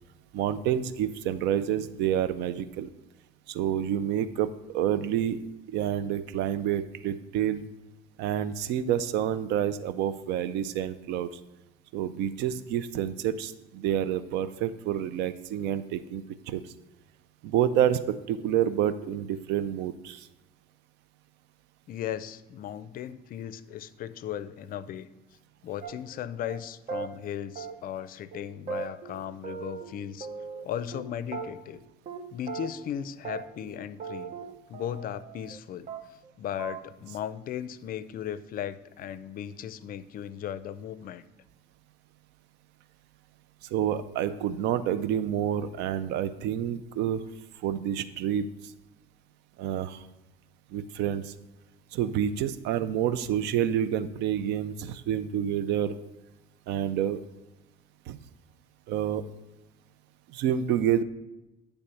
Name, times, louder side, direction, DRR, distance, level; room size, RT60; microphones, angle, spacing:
voice 1, 0.3-2.9 3.5-5.4 5.7-7.7 8.2-11.3 11.9-16.6 17.4-20.3 43.7-47.2 47.6-48.5 49.6-50.0 50.7-51.3 51.9-56.0 56.7-57.2 58.1-58.2 58.9-59.2 60.3-61.0, right 10 dB, 90° right, 14 dB, 0.5 m, -28 dB
voice 2, 21.9-25.1 25.6-30.3 30.6-31.8 32.3-34.3 34.7-35.9 36.4-41.2, left 10 dB, 60° left, 15 dB, 0.5 m, -36 dB
sound 1, 25.8-26.2 26.5-26.6 26.9-27.1 27.6-28.1 28.3-28.4 28.7-29.9 30.2-31.0 31.3-31.8 32.1-32.2 32.5-32.9 33.2-33.7 34.0-35.6 35.9-36.3 36.6-36.8, right 6 dB, 45° right, 0.9 m, -38 dB
9.8 x 3.5 x 6.9 m, 0.97 s
cardioid pair, 110°, 17 cm